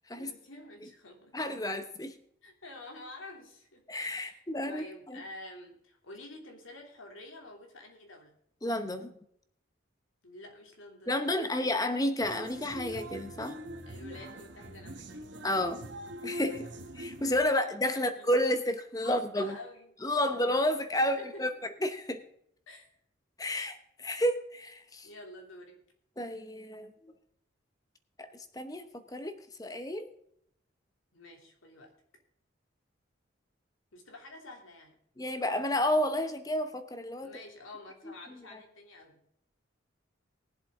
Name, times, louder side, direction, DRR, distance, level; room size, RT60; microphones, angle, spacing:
voice 1, 0.1-1.4 2.4-3.9 4.1-4.4 4.7-8.3 10.2-11.7 13.9-15.3 16.6-16.7 17.6-18.3 19.0-19.9 20.2-20.3 20.9-21.6 22.7-22.9 25.0-25.8 31.1-31.9 33.9-35.0 37.2-39.3, left 2 dB, 85° left, 2 dB, 2.9 m, -49 dB
voice 2, 1.3-2.2 3.9-5.2 8.6-9.1 11.1-13.6 15.4-15.8 16.2-16.7 17.0-19.6 20.0-21.5 21.8-22.2 23.4-25.1 26.2-27.1 28.2-30.1 35.2-37.3 38.0-38.1, left 1 dB, 20° left, 9 dB, 0.9 m, -31 dB
sound 1, 12.2-17.5, right 1 dB, 65° right, 1.4 m, -43 dB
20.0 x 7.7 x 3.7 m, 0.71 s
head